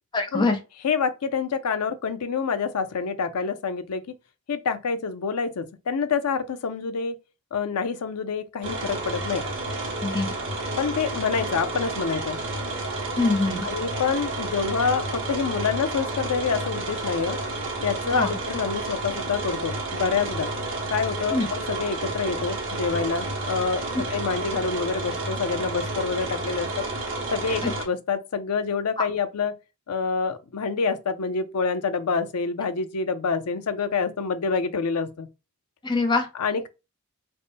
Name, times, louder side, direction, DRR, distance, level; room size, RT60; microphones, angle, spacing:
voice 1, 0.1-0.6 10.0-10.3 13.2-13.7 18.1-18.3 21.3-21.4 27.6-27.7 29.0-29.1 35.8-36.3, left 3 dB, 20° left, 0.6 m, -23 dB
voice 2, 0.8-4.0 4.5-7.2 7.5-9.4 10.8-12.4 13.6-17.4 17.8-20.5 20.9-26.9 27.3-29.6 29.9-35.3 36.3-36.7, left 5 dB, 90° left, 0.5 m, -27 dB
sound 1, 8.6-27.9, right 2 dB, 55° right, 1.0 m, -31 dB
3.4 x 2.1 x 4.1 m
head